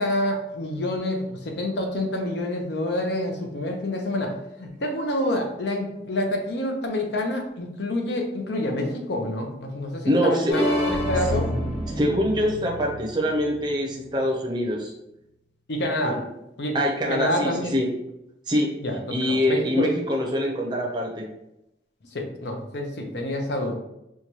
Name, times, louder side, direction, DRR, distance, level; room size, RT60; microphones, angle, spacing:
voice 1, 0.0-11.4 15.7-16.2 16.6-16.8 17.1-17.8 18.8-19.0 19.3-19.9 22.1-23.7, left 1 dB, 70° left, 3 dB, 0.6 m, -27 dB
voice 2, 10.1-10.7 11.9-14.9 16.0-16.2 16.7-17.9 18.5-18.7 19.1-21.2, equal, 25° right, -1 dB, 0.6 m, -24 dB
sound 1, 10.5-14.3, equal, 30° left, 1.3 m, -29 dB
4.5 x 2.2 x 2.9 m, 0.86 s
head